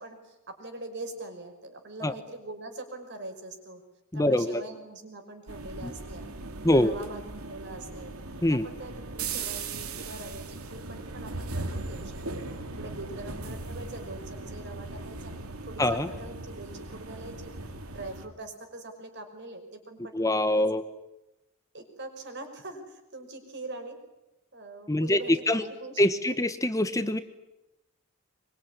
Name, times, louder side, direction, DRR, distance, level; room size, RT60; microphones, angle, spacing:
voice 1, 0.0-3.8 4.1-6.3 6.7-8.1 8.5-12.4 12.7-15.3 15.7-17.5 17.9-20.7 21.7-24.0 24.5-26.1, right 2 dB, 55° right, 6 dB, 5.6 m, -43 dB
voice 2, 4.1-4.6 5.8-5.9 6.6-6.9 8.4-8.6 15.8-16.1 20.1-20.8 24.9-25.2 25.5-25.6 26.0-27.2, left 1 dB, 15° left, 10 dB, 1.1 m, -24 dB
sound 1, 5.5-18.3, right 3 dB, 85° right, 2.8 m, -38 dB
24.0 x 23.5 x 10.0 m, 0.94 s
head